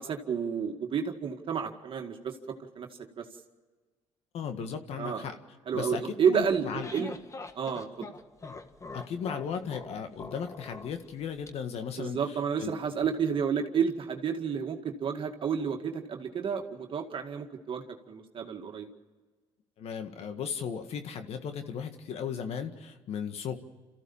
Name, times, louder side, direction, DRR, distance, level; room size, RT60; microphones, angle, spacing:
voice 1, 0.0-3.3 5.0-5.2 5.7-7.1 7.6-8.1 12.0-18.9, right 7 dB, 50° right, 4 dB, 2.0 m, -31 dB
voice 2, 4.3-5.4 5.7-6.0 6.3-6.9 8.9-12.8 19.8-23.6, left 7 dB, 65° left, 7 dB, 1.8 m, -36 dB
sound 1, 6.4-11.5, left 3 dB, 25° left, 1.6 m, -44 dB
27.0 x 15.0 x 7.2 m, 1.4 s
supercardioid pair, 85°, 11 cm